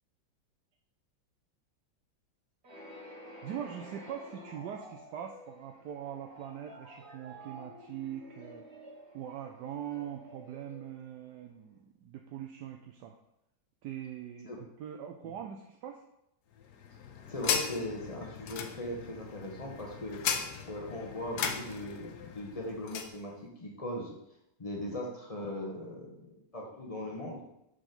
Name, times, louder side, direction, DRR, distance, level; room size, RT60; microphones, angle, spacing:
sound 1, 2.6-11.4, equal, 40° right, 1.1 m, -51 dB
voice 1, 3.4-8.7 9.1-13.2 13.8-16.0 23.8-24.0 25.7-25.8, right 9 dB, 75° right, 3 dB, 1.0 m, -42 dB
sound 2, 16.6-23.2, left 7 dB, 70° left, 1.1 m, -37 dB
voice 2, 17.3-20.2 20.7-24.1 24.6-27.4, left 1 dB, 30° left, -1 dB, 0.7 m, -39 dB
6.5 x 4.9 x 3.9 m, 0.83 s
omnidirectional pair, 2.1 m